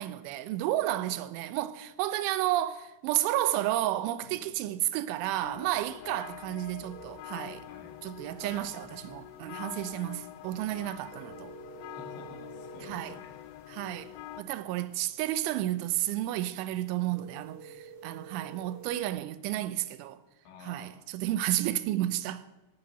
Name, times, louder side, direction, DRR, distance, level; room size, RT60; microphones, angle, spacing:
voice 1, 0.0-7.6 8.0-11.5 12.8-13.2 13.7-20.2 20.6-22.4, right 14 dB, 90° right, 3.2 m, -32 dB
sound 1, 5.4-14.4, left 14 dB, 90° left, 3.1 m, -45 dB
sound 2, 6.8-19.1, right 6 dB, 70° right, 1.9 m, -52 dB
voice 2, 10.7-11.0 11.9-13.3 20.4-20.9, left 4 dB, 70° left, 4.4 m, -50 dB
17.0 x 7.9 x 6.6 m
omnidirectional pair, 5.3 m